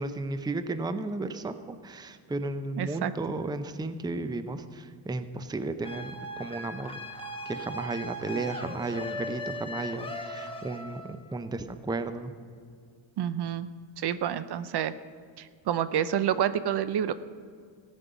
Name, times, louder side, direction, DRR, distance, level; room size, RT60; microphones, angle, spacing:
voice 1, 0.0-7.0 7.5-12.3, right 2 dB, 10° right, 10 dB, 0.5 m, -34 dB
voice 2, 2.8-3.1 13.2-13.7 14.0-14.9 15.4-17.1, right 10 dB, 55° right, 14 dB, 0.6 m, -28 dB
sound 1, 5.8-11.3, left 1 dB, 10° left, 1.3 m, -38 dB
15.0 x 5.4 x 9.1 m, 2.1 s
cardioid pair, 100°, 48 cm